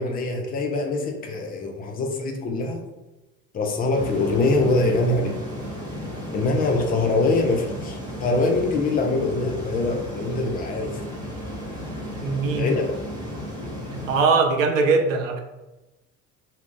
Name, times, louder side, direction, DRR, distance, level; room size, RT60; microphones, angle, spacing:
voice 1, 0.0-2.8 3.5-5.4 6.3-11.0 12.5-12.8, left 2 dB, 25° left, 2 dB, 0.4 m, -23 dB
sound 1, 3.9-14.2, left 1 dB, 10° right, 1.1 m, -34 dB
voice 2, 12.1-12.7 13.9-15.4, right 4 dB, 70° right, 4 dB, 0.5 m, -21 dB
2.3 x 2.1 x 3.6 m, 1.0 s
figure-of-eight pair, 60°, 40 cm